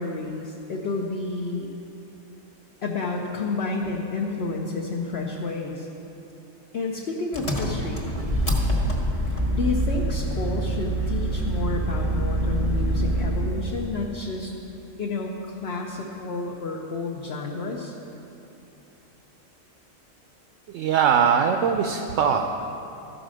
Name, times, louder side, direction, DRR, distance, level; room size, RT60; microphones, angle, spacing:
voice 1, 0.0-1.7 2.8-5.9 6.7-8.1 9.3-14.5 15.0-17.9, left 3 dB, 55° left, -1 dB, 0.9 m, -30 dB
Engine, 7.3-13.6, right 1 dB, 25° left, 1.2 m, -25 dB
voice 2, 20.7-22.6, right 7 dB, 70° right, 5 dB, 0.8 m, -21 dB
14.0 x 5.0 x 6.2 m, 2.9 s
omnidirectional pair, 1.4 m